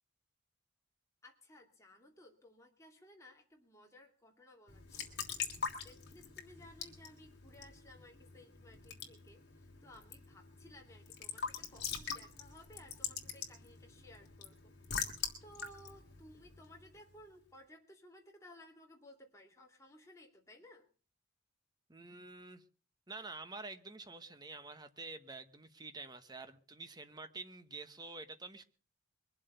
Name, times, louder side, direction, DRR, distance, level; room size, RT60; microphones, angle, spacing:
voice 1, 1.2-15.1 15.4-20.9, left 1 dB, 15° left, 2.6 m, -59 dB
Raindrop / Drip / Trickle dribble, 4.7-17.2, left 6 dB, 50° left, 3.0 m, -44 dB
voice 2, 21.9-22.6 23.1-28.6, right 3 dB, 20° right, 1.0 m, -48 dB
22.5 x 7.6 x 6.8 m
head